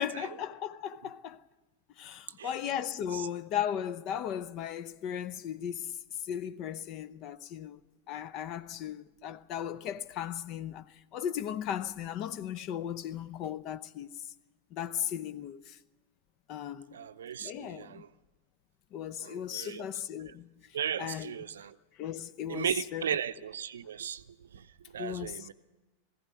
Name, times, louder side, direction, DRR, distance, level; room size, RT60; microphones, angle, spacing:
voice 1, 0.0-1.4 2.0-7.8 8.1-14.3 14.7-15.8 16.5-17.0 17.4-18.0 18.9-20.5 21.0-21.4 22.0-23.2 25.0-25.5, left 10 dB, 40° left, 0.7 m, -36 dB
voice 2, 16.9-18.1 19.2-19.9 20.7-21.7 22.5-24.2 24.5-24.7 24.9-25.5, right 9 dB, 65° right, 0.6 m, -36 dB
20.5 x 15.5 x 9.2 m
figure-of-eight pair, 90°, 0 cm